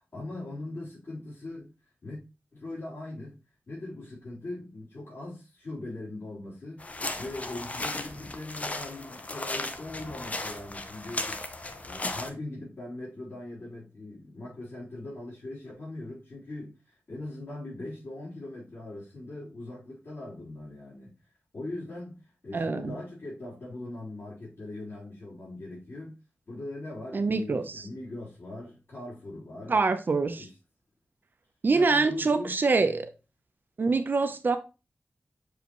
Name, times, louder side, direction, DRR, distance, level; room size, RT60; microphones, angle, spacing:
voice 1, 0.0-1.7 2.0-2.2 2.5-3.4 3.7-6.8 7.2-11.4 11.8-21.1 21.5-26.2 26.5-29.8 30.4-30.5 31.7-33.0, left 2 dB, 55° left, 3.9 m, -40 dB
sound 1, 6.8-12.3, left 2 dB, 35° left, 0.8 m, -36 dB
voice 2, 22.5-22.9 27.1-27.8 29.7-30.4 31.6-33.0 33.8-34.6, right 4 dB, 55° right, 0.8 m, -25 dB
6.7 x 4.8 x 3.1 m
wide cardioid pair, 110°, 4 cm